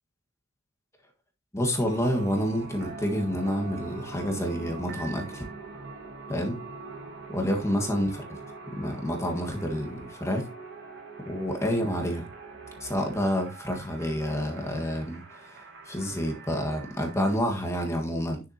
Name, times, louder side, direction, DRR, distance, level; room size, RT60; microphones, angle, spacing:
voice 1, 1.5-5.5 6.3-6.6 7.3-8.2 8.7-10.5 11.2-12.3 12.8-18.4, equal, 15° left, 1.5 m, -28 dB
sound 1, 1.7-17.4, right 3 dB, 55° right, 2.4 m, -46 dB
sound 2, 1.9-13.3, right 4 dB, 90° right, 2.0 m, -44 dB
9.4 x 7.2 x 2.8 m
head